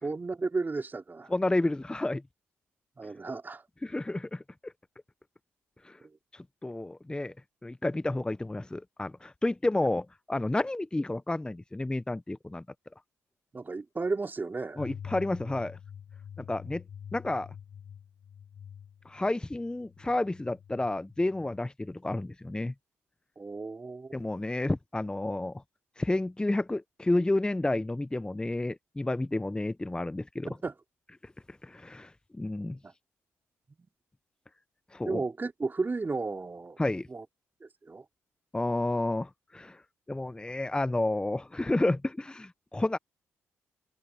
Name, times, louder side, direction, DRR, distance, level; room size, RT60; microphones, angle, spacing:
voice 1, 0.0-1.3 3.0-3.6 6.0-6.1 13.5-14.8 23.4-24.1 30.4-30.7 32.8-32.9 35.0-36.8 37.1-37.2 37.6-38.0, right 3 dB, 30° right, 3.8 m, -33 dB
voice 2, 1.3-2.2 3.8-4.7 5.8-6.0 6.3-7.3 7.6-12.6 14.8-15.8 16.5-16.8 17.1-17.5 19.1-22.7 24.1-25.6 26.0-30.5 31.6-32.8 34.9-35.2 36.8-37.1 38.5-39.8 40.1-43.0, left 2 dB, 15° left, 0.8 m, -30 dB
sound 1, 14.8-21.6, left 8 dB, 65° left, 6.7 m, -47 dB
supercardioid pair, 50°, 6 cm